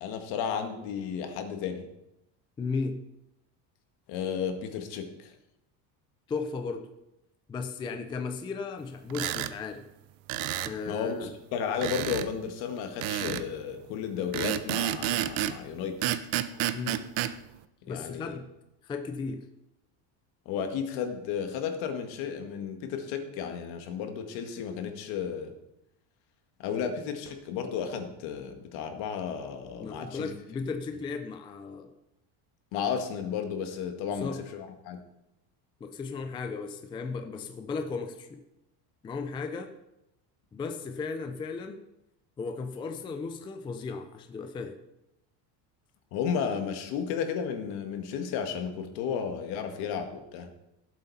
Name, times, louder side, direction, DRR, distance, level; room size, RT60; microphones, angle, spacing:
voice 1, 0.0-1.9 4.1-5.3 10.9-16.0 17.9-18.4 20.5-25.5 26.6-30.3 32.7-35.0 46.1-50.5, left 7 dB, 60° left, 6 dB, 1.8 m, -33 dB
voice 2, 2.6-3.0 6.3-6.9 7.5-9.9 10.6-11.3 16.7-17.0 17.9-18.5 18.8-19.5 29.8-31.9 34.1-34.4 35.8-38.4 39.0-39.7 40.5-41.8 42.4-44.8, left 4 dB, 10° left, 6 dB, 0.4 m, -35 dB
sound 1, 9.1-9.5 10.3-10.8 11.8-12.3 13.0-13.5 14.3-15.6 16.0-17.3, right 13 dB, 50° right, 0.7 m, -30 dB
17.0 x 7.9 x 4.2 m, 0.88 s
cardioid pair, 175°, 43 cm